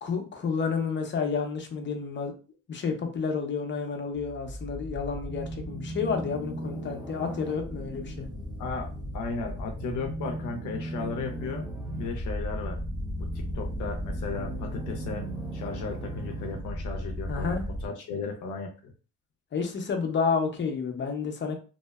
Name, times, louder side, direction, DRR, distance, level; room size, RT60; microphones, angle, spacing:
voice 1, 0.0-2.3 2.7-8.3 17.3-17.6 19.5-21.5, left 5 dB, 40° left, 4 dB, 0.6 m, -30 dB
sound 1, 4.1-17.9, equal, 15° right, 0.6 m, -35 dB
voice 2, 8.6-11.7 12.0-12.8 13.2-15.3 15.5-17.5 17.8-18.9, left 4 dB, 80° left, 3 dB, 0.5 m, -35 dB
2.7 x 2.0 x 2.2 m, 0.36 s
cardioid pair, 90°, 30 cm